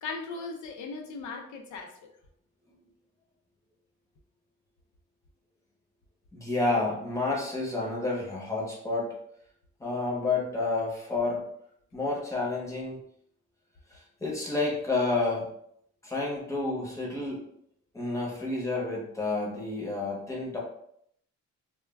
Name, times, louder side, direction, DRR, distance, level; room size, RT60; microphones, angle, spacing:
voice 1, 0.0-2.1, left 4 dB, 90° left, 3 dB, 0.6 m, -38 dB
voice 2, 6.3-9.1 9.8-11.4 11.9-13.0 13.9-15.5 16.0-17.4 17.9-20.6, left 3 dB, 10° left, -4 dB, 0.6 m, -30 dB
2.2 x 2.2 x 3.3 m, 0.69 s
cardioid pair, 180°, 29 cm